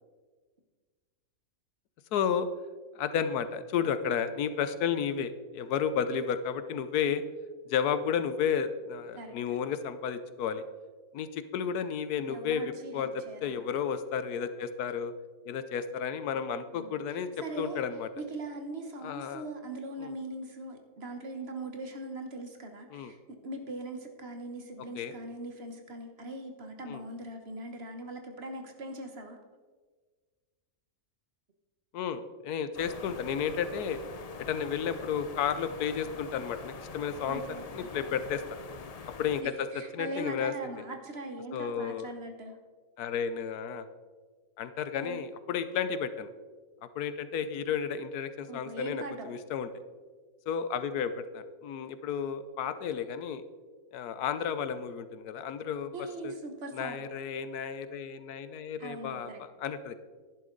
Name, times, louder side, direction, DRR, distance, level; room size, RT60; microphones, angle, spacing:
voice 1, 2.1-2.5 2.9-7.2 7.7-10.6 11.1-15.1 15.4-17.3 17.6-18.1 19.0-19.4 20.0-20.1 22.9-23.1 25.0-25.1 26.9-27.0 31.9-34.0 34.4-38.4 39.2-40.5 41.5-42.1 43.0-43.9 44.6-46.3 47.0-49.7 50.5-53.4 53.9-55.9 56.2-56.3 56.7-60.0, left 7 dB, 85° left, 12 dB, 1.2 m, -32 dB
voice 2, 9.1-9.6 12.3-13.7 16.7-17.8 18.2-29.4 37.2-37.9 39.4-42.6 45.0-45.2 48.5-49.3 55.9-57.0 58.8-59.4, right 2 dB, 45° right, 5 dB, 1.3 m, -41 dB
sound 1, 32.7-39.4, left 5 dB, 60° left, 0.4 m, -44 dB
11.0 x 11.0 x 3.9 m, 1.4 s
omnidirectional pair, 1.6 m